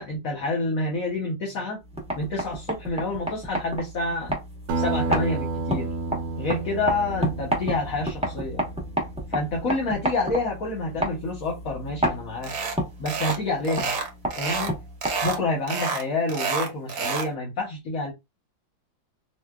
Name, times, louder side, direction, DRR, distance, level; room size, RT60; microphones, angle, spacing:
voice 1, 0.0-1.8 2.2-4.3 4.7-5.9 6.4-8.6 9.3-12.5 13.0-13.9 14.4-14.7 15.2-18.1, left 2 dB, 50° left, 1.2 m, -28 dB
sound 1, 1.8-15.6, right 1 dB, 5° right, 0.5 m, -31 dB
Acoustic guitar, 4.7-9.5, right 3 dB, 75° right, 1.3 m, -31 dB
sound 2, 12.4-12.8 13.1-13.4 13.6-14.7 15.0-15.4 15.7-17.3, right 4 dB, 60° right, 1.1 m, -28 dB
4.5 x 2.4 x 2.3 m
omnidirectional pair, 2.1 m